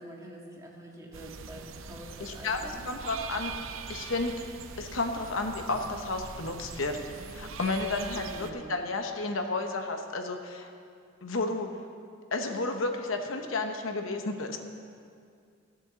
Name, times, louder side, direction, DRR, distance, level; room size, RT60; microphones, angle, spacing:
voice 1, 0.0-2.9 8.1-8.8, right 1 dB, 15° right, -2 dB, 1.9 m, -46 dB
sound 1, 1.1-8.5, right 5 dB, 70° right, 0.7 m, -42 dB
voice 2, 2.2-3.5 3.9-4.3 4.8-10.7 11.2-11.7 12.3-14.6, left 3 dB, 70° left, 5 dB, 1.0 m, -32 dB
15.0 x 8.0 x 7.0 m, 2.3 s
head